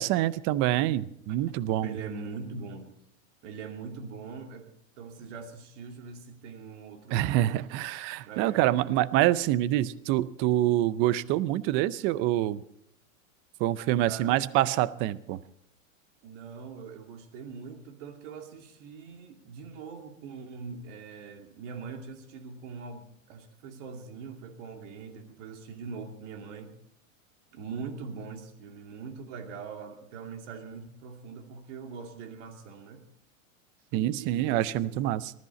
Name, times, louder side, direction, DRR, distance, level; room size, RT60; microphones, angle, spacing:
voice 1, 0.0-1.9 7.1-12.6 13.6-15.4 33.9-35.3, right 14 dB, 30° right, 18 dB, 0.5 m, -26 dB
voice 2, 1.8-2.9 3.4-7.6 8.3-8.8 14.0-14.4 16.2-26.8 27.5-33.1 34.2-35.0, right 5 dB, 60° right, 5 dB, 2.7 m, -42 dB
19.5 x 13.5 x 4.1 m, 0.75 s
supercardioid pair, 140°, 41 cm